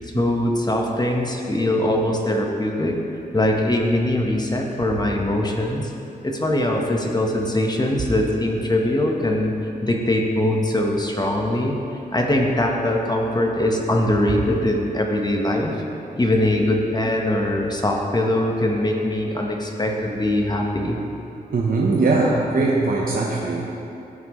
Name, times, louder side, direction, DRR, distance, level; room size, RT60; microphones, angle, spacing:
voice 1, 0.0-3.0 3.3-5.9 6.2-9.5 9.8-11.8 12.1-15.8 16.2-21.0, left 1 dB, 25° left, 0 dB, 1.2 m, -22 dB
voice 2, 21.5-23.7, right 3 dB, 60° right, -3 dB, 0.9 m, -20 dB
15.0 x 5.9 x 3.2 m, 2.8 s
cardioid pair, 65°, 17 cm